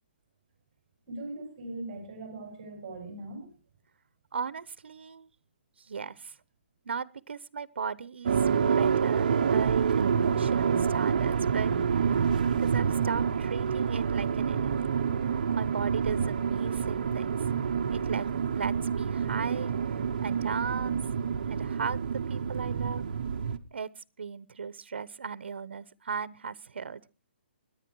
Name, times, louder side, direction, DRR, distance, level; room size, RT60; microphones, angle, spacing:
voice 1, 1.1-3.5, right 2 dB, 20° right, 4 dB, 5.6 m, -40 dB
voice 2, 4.3-5.3 5.8-6.4 6.8-8.4 8.8-11.7 12.6-14.9 15.5-17.4 17.9-18.3 18.5-19.7 20.2-21.0 21.5-23.0 23.7-27.0, right 6 dB, 70° right, 18 dB, 0.9 m, -37 dB
sound 1, 8.2-23.6, right 6 dB, 45° right, 1.0 m, -27 dB
22.5 x 9.5 x 4.6 m, 0.33 s
hypercardioid pair, 180°, 6 cm